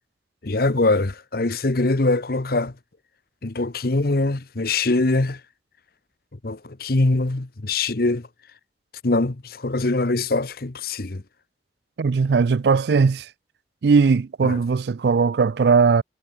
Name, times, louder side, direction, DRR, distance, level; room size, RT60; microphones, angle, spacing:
voice 1, 0.4-2.7 3.4-5.4 6.3-8.3 9.0-11.2 14.4-14.6, left 2 dB, 55° left, 1.1 m, -23 dB
voice 2, 12.0-13.3 13.8-16.0, right 5 dB, 65° right, 0.4 m, -18 dB
head